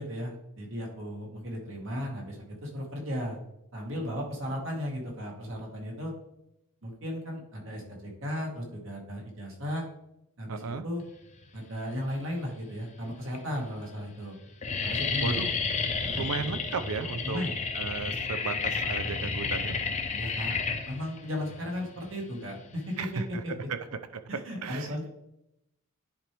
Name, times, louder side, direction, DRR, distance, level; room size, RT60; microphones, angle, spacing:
voice 1, 0.0-3.4 3.7-6.1 6.8-9.8 10.4-11.0 11.5-14.4 14.8-15.5 16.0-16.3 17.2-17.5 20.1-20.5 20.9-23.5 24.3-25.1, equal, 60° right, -1 dB, 1.9 m, -35 dB
voice 2, 10.5-10.8 15.2-15.5 16.2-17.4 17.7-19.8 23.0-23.8 24.1-24.2 24.6-25.1, right 5 dB, 85° right, 11 dB, 0.6 m, -35 dB
sound 1, 12.0-12.6 13.3-13.4 13.6-14.0 14.3-23.2, left 5 dB, 30° left, 0.7 m, -31 dB
10.0 x 4.5 x 3.4 m, 0.83 s
head